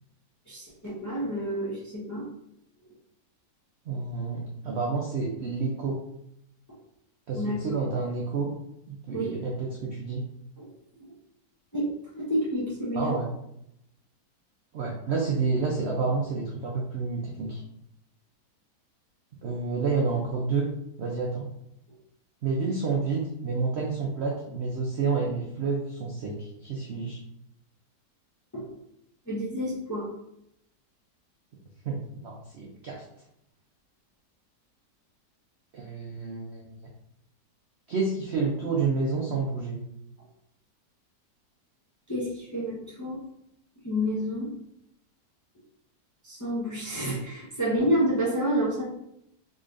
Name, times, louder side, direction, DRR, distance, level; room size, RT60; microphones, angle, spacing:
voice 1, 0.5-2.3 7.3-7.7 9.1-9.4 10.6-10.7 11.0-11.1 11.7-11.9 12.2-13.2 28.5-28.7 29.3-30.1 42.1-43.2 43.8-44.5 46.2-48.8, equal, 20° left, -7 dB, 0.5 m, -29 dB
voice 2, 3.9-6.0 7.3-8.5 8.9-10.3 12.9-13.3 14.7-17.6 19.4-20.7 21.0-21.5 22.4-27.2 31.8-33.0 35.7-36.9 37.9-39.8, right 4 dB, 70° right, -2 dB, 0.6 m, -29 dB
3.8 x 3.2 x 2.5 m, 0.77 s
omnidirectional pair, 1.8 m